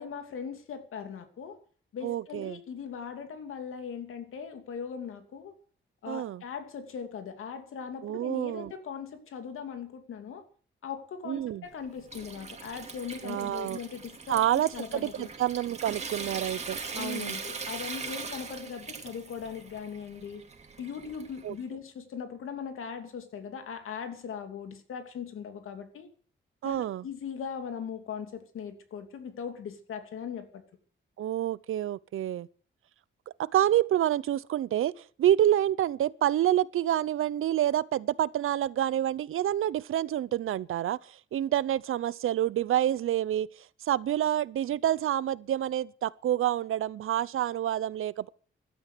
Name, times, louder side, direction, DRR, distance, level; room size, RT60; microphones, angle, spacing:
voice 1, 0.0-1.6 1.9-5.5 6.0-10.4 10.8-15.3 16.9-20.4 20.8-26.1 26.6-30.6, left 7 dB, 90° left, 2.9 m, -39 dB
voice 2, 2.0-2.6 6.1-6.4 8.0-8.7 11.2-11.6 13.2-13.8 14.3-17.4 21.4-21.5 26.6-27.0 31.2-32.5 33.4-34.9 35.2-43.5 43.8-48.3, right 12 dB, 85° right, 0.7 m, -28 dB
Water tap faucet / Sink (filling or washing) / Trickle dribble, 11.7-21.6, right 4 dB, 35° right, 2.5 m, -41 dB
16.0 x 12.5 x 6.8 m
wide cardioid pair, 135°, 21 cm